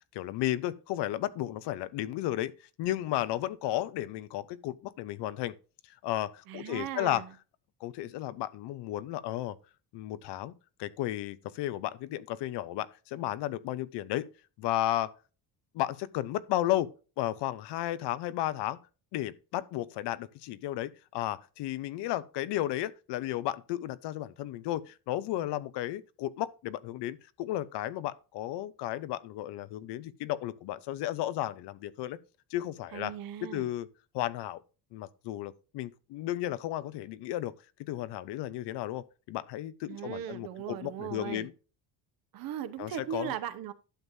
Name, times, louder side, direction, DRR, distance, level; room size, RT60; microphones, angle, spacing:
voice 1, 0.1-2.5 2.8-5.5 6.0-7.2 7.8-9.6 9.9-10.5 10.8-14.3 14.6-15.1 15.7-16.9 17.2-18.8 19.1-32.2 32.5-33.1 33.4-33.9 34.1-34.6 34.9-37.5 37.8-41.5 42.8-43.3, left 14 dB, 80° left, 0.8 m, -33 dB
voice 2, 6.5-7.3 32.9-33.7 39.9-41.5 42.3-43.7, right 10 dB, 55° right, 1.0 m, -38 dB
11.5 x 7.3 x 2.7 m
cardioid pair, 175°, 40 cm